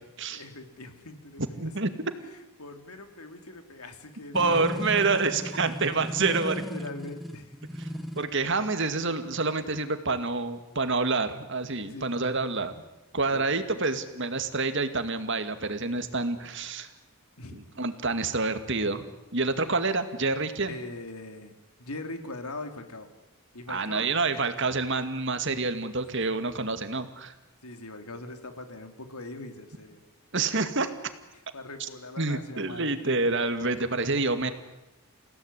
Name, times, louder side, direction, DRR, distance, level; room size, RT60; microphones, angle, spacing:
voice 1, 0.3-1.7 2.2-2.3 2.6-5.1 6.3-7.6 11.8-12.3 13.3-13.4 17.4-17.7 20.7-21.5 21.8-23.1 23.5-24.5 26.1-26.2 27.6-30.0 31.5-33.4, left 2 dB, 85° left, 7 dB, 3.1 m, -42 dB
voice 2, 1.6-1.9 4.3-6.5 8.2-12.7 13.1-16.9 17.5-19.0 19.3-20.8 23.7-27.3 30.3-30.9 31.8-31.9 32.2-34.5, right 3 dB, 55° right, 9 dB, 2.2 m, -27 dB
sound 1, 4.3-8.3, equal, ahead, 1.2 m, -36 dB
29.5 x 17.0 x 9.9 m, 0.97 s
head